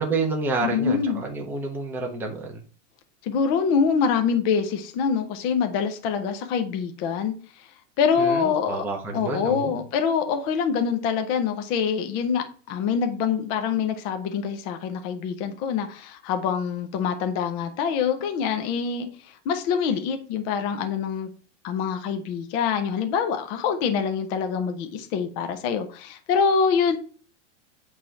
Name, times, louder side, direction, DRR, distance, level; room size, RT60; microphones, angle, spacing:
voice 1, 0.0-2.6 8.2-9.8, right 3 dB, 5° right, 0.9 m, -29 dB
voice 2, 0.6-1.2 3.2-7.3 8.0-8.8 9.1-19.1 19.5-21.3 21.6-27.0, left 6 dB, 15° left, 0.3 m, -25 dB
8.6 x 3.2 x 5.6 m
supercardioid pair, 155°, 37 cm